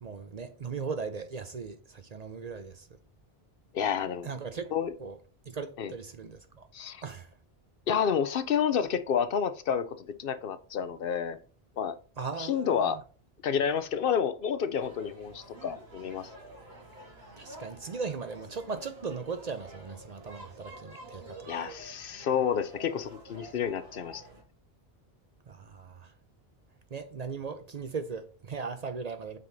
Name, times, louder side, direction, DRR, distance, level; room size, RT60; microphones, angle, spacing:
voice 1, 0.0-2.9 4.2-4.7 5.0-5.2 5.5-6.7 7.0-7.3 12.2-13.0 17.4-21.5 25.5-26.1 26.9-29.4, right 5 dB, 45° right, 0.6 m, -38 dB
voice 2, 3.7-4.3 4.7-4.9 5.8-5.9 6.7-7.0 7.9-11.4 11.8-12.0 12.4-13.0 13.4-16.3 21.5-24.2, left 7 dB, 65° left, 0.8 m, -29 dB
sound 1, 14.8-24.4, right 1 dB, 75° right, 2.4 m, -49 dB
7.6 x 5.7 x 2.7 m
omnidirectional pair, 1.0 m